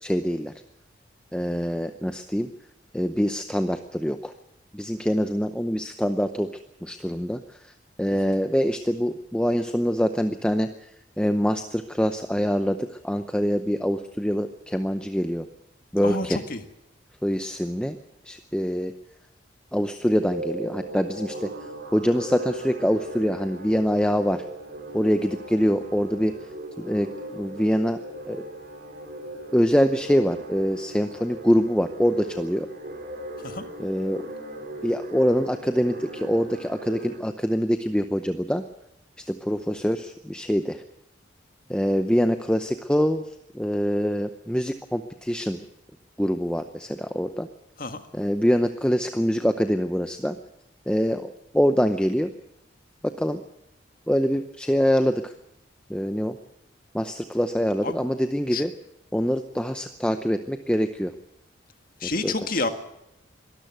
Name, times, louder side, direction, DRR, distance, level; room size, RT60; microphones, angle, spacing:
voice 1, 0.0-0.5 1.3-2.5 2.9-4.3 4.7-6.5 6.8-7.4 8.0-10.7 11.2-12.8 13.0-15.5 15.9-16.4 17.2-18.0 18.3-18.9 19.7-21.5 21.9-24.4 24.9-26.3 26.8-27.1 27.3-28.0 28.3-28.4 29.5-32.7 33.8-34.2 34.8-38.6 39.2-40.8 41.7-43.2 43.5-45.6 46.2-47.5 48.1-50.4 50.9-51.3 51.5-52.3 53.2-53.4 54.1-55.3 55.9-56.4 56.9-58.7 59.1-61.1 62.0-62.7, equal, 5° left, 8 dB, 0.7 m, -24 dB
voice 2, 16.0-16.6 33.4-33.6 47.8-48.0 57.8-57.9 58.5-58.6 62.0-62.7, left 3 dB, 45° left, 7 dB, 1.8 m, -28 dB
sound 1, 20.0-37.2, right 1 dB, 50° right, 5.2 m, -38 dB
22.5 x 13.0 x 9.3 m, 0.82 s
head